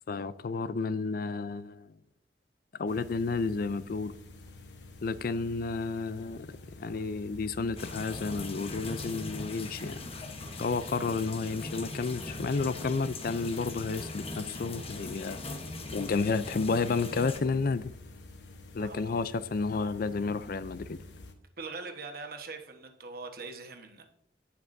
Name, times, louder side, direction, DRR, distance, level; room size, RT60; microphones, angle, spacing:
voice 1, 0.1-1.9 2.8-4.1 5.0-10.0 10.6-15.4 15.9-17.9 18.7-21.0, left 4 dB, 55° left, 0.4 m, -31 dB
sound 1, 2.9-21.3, left 1 dB, 90° left, 1.1 m, -49 dB
sound 2, 7.8-17.4, left 2 dB, 35° left, 1.1 m, -40 dB
voice 2, 18.8-19.2 21.6-24.0, right 4 dB, 55° right, 1.2 m, -42 dB
17.5 x 5.9 x 2.6 m
head